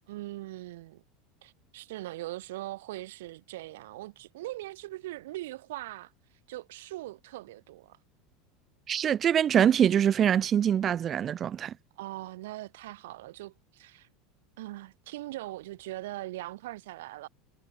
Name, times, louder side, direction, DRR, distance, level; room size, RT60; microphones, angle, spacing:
voice 1, 0.1-1.0 1.4-6.1 6.5-8.0 12.0-14.1 14.6-17.3, right 17 dB, 85° right, 4.1 m, -41 dB
voice 2, 8.9-11.7, right 9 dB, 30° right, 2.3 m, -24 dB
supercardioid pair, 130°, 0 cm